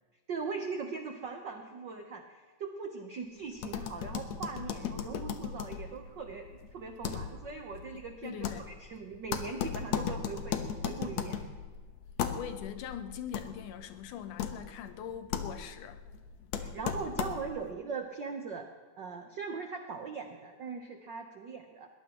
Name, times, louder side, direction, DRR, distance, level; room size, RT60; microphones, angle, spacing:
voice 1, 0.3-11.4 16.6-18.7 19.0-21.9, right 5 dB, 85° right, 4 dB, 0.9 m, -40 dB
sound 1, 3.6-17.7, left 8 dB, 70° left, 2.1 m, -37 dB
voice 2, 7.9-8.7 12.3-16.0, left 9 dB, 90° left, 9 dB, 2.5 m, -42 dB
21.5 x 20.0 x 3.0 m, 1.4 s
omnidirectional pair, 3.5 m